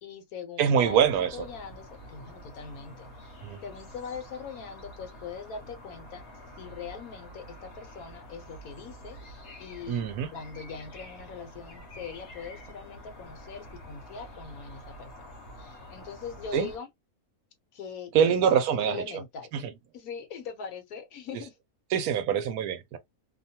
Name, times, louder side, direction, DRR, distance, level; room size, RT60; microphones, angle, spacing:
voice 1, 0.0-3.1 3.6-6.2 6.6-10.0 10.3-16.9 17.7-18.4 18.7-19.5 19.9-21.5, left 6 dB, 70° left, 1.2 m, -41 dB
voice 2, 0.6-1.3 3.4-3.6 9.9-10.3 16.5-16.7 18.1-19.0 19.5-19.6 21.9-23.0, right 8 dB, 75° right, 1.0 m, -24 dB
sound 1, 0.8-16.8, equal, 55° left, 1.0 m, -47 dB
2.8 x 2.2 x 2.7 m
omnidirectional pair, 1.6 m